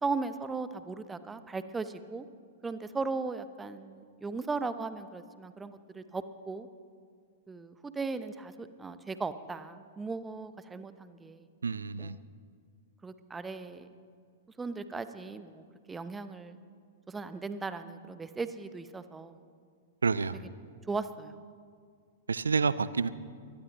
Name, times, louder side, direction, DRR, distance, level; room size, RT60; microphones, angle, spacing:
voice 1, 0.0-2.3 2.6-6.7 7.5-11.5 12.0-12.1 13.0-13.9 14.6-16.6 17.1-19.4 20.9-21.4, right 4 dB, 10° right, 0.8 m, -37 dB
voice 2, 11.6-12.2 20.0-20.4 22.3-23.1, right 5 dB, 75° right, 0.5 m, -29 dB
24.0 x 18.5 x 3.0 m
figure-of-eight pair, 105°, 0 cm